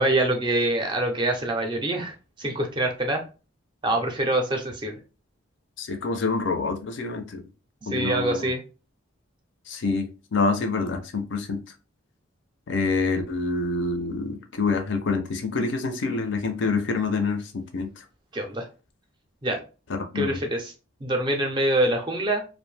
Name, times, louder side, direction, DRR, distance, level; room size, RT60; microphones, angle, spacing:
voice 1, 0.0-2.1 2.4-3.2 3.8-5.0 7.8-8.6 18.3-18.7 19.4-19.6 20.1-20.7 21.0-22.4, right 1 dB, 25° right, 0.4 m, -25 dB
voice 2, 5.8-7.4 7.9-8.5 9.7-11.6 12.7-17.9 19.9-20.4, left 4 dB, 60° left, 0.4 m, -27 dB
2.5 x 2.1 x 3.1 m
head